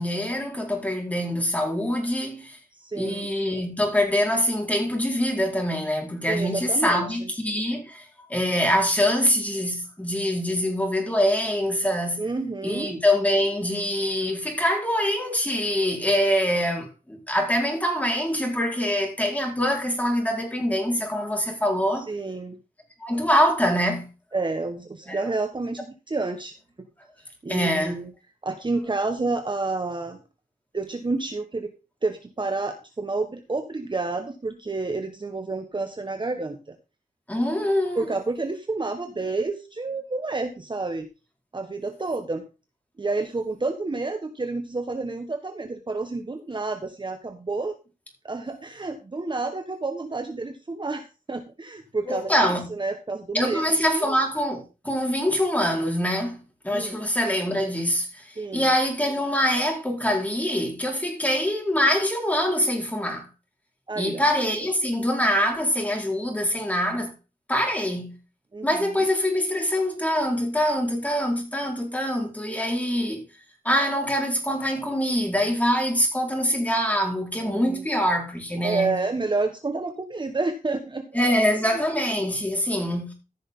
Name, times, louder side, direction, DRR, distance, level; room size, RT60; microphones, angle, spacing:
voice 1, 0.0-2.6 2.9-12.2 12.6-22.1 23.0-24.1 25.1-25.3 27.5-28.0 37.3-38.0 52.0-52.7 53.3-56.4 56.6-63.3 64.0-67.1 67.5-68.2 68.6-73.2 73.6-79.0 81.1-83.1, equal, 10° left, 4.6 m, -24 dB
voice 2, 2.8-3.3 6.3-7.3 12.2-13.0 21.9-22.6 24.3-26.5 27.4-28.1 28.4-30.2 30.7-31.7 32.0-36.7 37.9-41.1 41.5-42.4 43.0-47.7 48.2-53.6 53.9-54.2 56.7-57.0 58.4-58.7 63.9-64.2 68.5-69.0 77.4-77.8 78.6-81.1 81.7-81.8, right 3 dB, 30° right, 1.4 m, -29 dB
15.0 x 6.4 x 3.9 m
cardioid pair, 70°, 15 cm